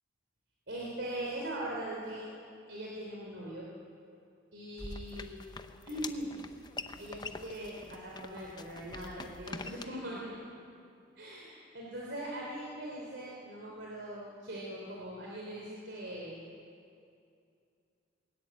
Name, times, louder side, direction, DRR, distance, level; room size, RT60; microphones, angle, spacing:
voice 1, 0.7-2.3 2.7-3.7 4.5-5.4 5.8-6.3 7.0-10.4 11.2-16.4, right 1 dB, 65° right, -3 dB, 3.4 m, -41 dB
sound 1, 4.8-9.8, left 3 dB, 20° left, 0.7 m, -45 dB
20.5 x 18.0 x 8.3 m, 2.5 s
head